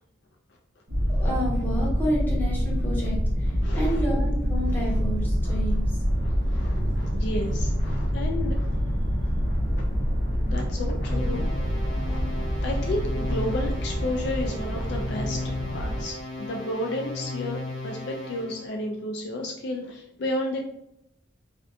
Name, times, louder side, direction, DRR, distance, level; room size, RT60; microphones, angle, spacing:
sound 1, 0.9-16.0, equal, 60° right, 0.8 m, -26 dB
voice 1, 1.2-5.9 6.8-7.2, equal, 10° left, -5 dB, 0.7 m, -30 dB
voice 2, 3.6-4.0 4.7-5.0 5.4-5.6 6.0-9.9 10.4-11.5 11.8-12.2 12.6-20.7, left 1 dB, 55° left, 2 dB, 0.3 m, -33 dB
sound 2, 11.1-18.7, left 2 dB, 40° left, 0.8 m, -36 dB
2.5 x 2.2 x 2.6 m, 0.80 s
head